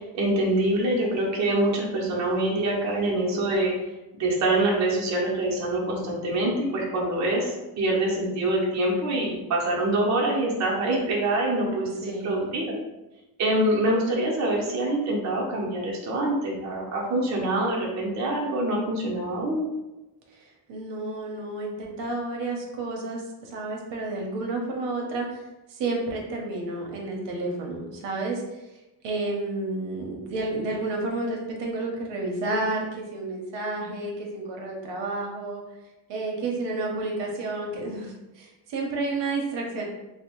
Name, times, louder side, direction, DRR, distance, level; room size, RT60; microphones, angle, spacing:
voice 1, 0.1-3.8 4.1-12.7 13.4-19.7, right 1 dB, 40° right, -3 dB, 0.7 m, -25 dB
voice 2, 12.0-12.5 20.4-25.4 25.7-28.4 29.0-35.6 36.1-39.8, right 2 dB, 80° right, 0 dB, 0.7 m, -31 dB
2.6 x 2.0 x 2.9 m, 1.0 s
cardioid pair, 135°, 43 cm